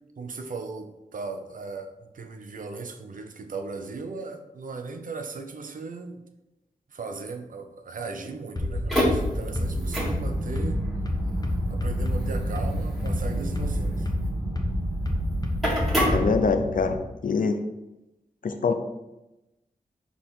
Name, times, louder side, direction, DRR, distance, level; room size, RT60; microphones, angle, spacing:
voice 1, 0.2-6.2 6.9-10.8 11.7-14.1, right 4 dB, 70° right, 6 dB, 0.7 m, -37 dB
sound 1, 8.6-16.4, left 1 dB, 30° left, 0.9 m, -29 dB
sound 2, 8.7-17.0, right 1 dB, ahead, 1.7 m, -29 dB
voice 2, 16.1-17.0 17.2-17.6 18.4-18.7, left 4 dB, 70° left, 6 dB, 0.6 m, -24 dB
5.6 x 4.2 x 4.5 m, 0.96 s
wide cardioid pair, 125°, 14 cm